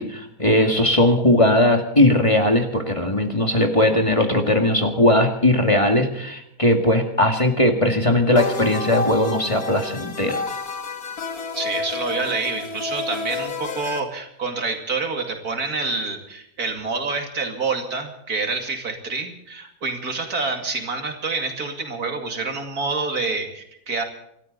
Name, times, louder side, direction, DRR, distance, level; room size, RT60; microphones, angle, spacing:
voice 1, 0.0-10.4, left 1 dB, 20° left, 4 dB, 2.0 m, -19 dB
sound 1, 8.4-14.0, left 3 dB, 70° left, 2.3 m, -30 dB
voice 2, 11.5-24.0, right 4 dB, 75° right, 4 dB, 3.0 m, -27 dB
26.5 x 13.5 x 4.0 m, 0.77 s
omnidirectional pair, 1.6 m